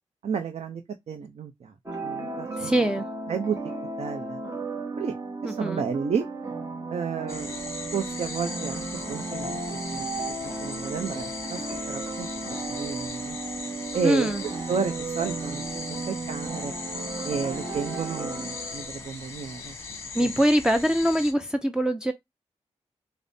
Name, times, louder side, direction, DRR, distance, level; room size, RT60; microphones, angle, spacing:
voice 1, 0.2-0.8 1.1-1.7 2.0-2.9 3.3-3.6 4.0-4.4 5.0-5.1 5.4-6.3 6.9-7.5 7.9-9.6 9.9-10.1 10.4-11.6 11.9-12.3 12.7-13.4 13.9-14.3 14.7-16.7 17.2-19.8 20.2-20.3, right 6 dB, 65° right, 0.6 m, -31 dB
sound 1, 1.9-19.1, right 3 dB, 30° right, 0.9 m, -35 dB
voice 2, 2.6-3.0 5.4-5.8 14.0-14.4 20.1-22.1, equal, 5° right, 0.4 m, -23 dB
sound 2, 7.3-21.3, left 4 dB, 25° left, 1.0 m, -38 dB
4.9 x 2.0 x 2.6 m
cardioid pair, 85°, 12 cm